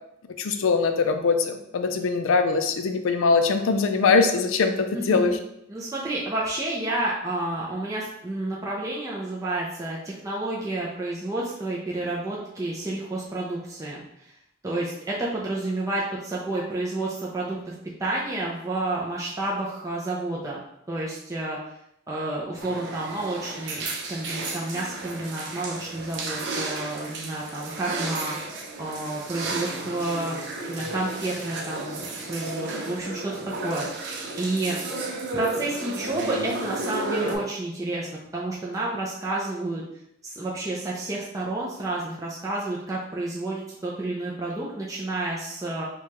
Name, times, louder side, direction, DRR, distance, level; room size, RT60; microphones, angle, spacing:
voice 1, 0.4-5.4, left 4 dB, 85° left, 8 dB, 0.4 m, -22 dB
voice 2, 4.9-5.3 5.7-14.3 14.6-17.7 18.0-20.6 20.9-21.6 22.1-28.4 28.8-30.4 30.7-33.9 34.4-34.8 35.3-38.1 38.3-39.8 40.2-45.9, right 2 dB, 15° right, -5 dB, 0.5 m, -30 dB
sound 1, 22.6-37.4, right 2 dB, 60° right, 0.6 m, -33 dB
4.6 x 2.3 x 2.9 m, 0.79 s
head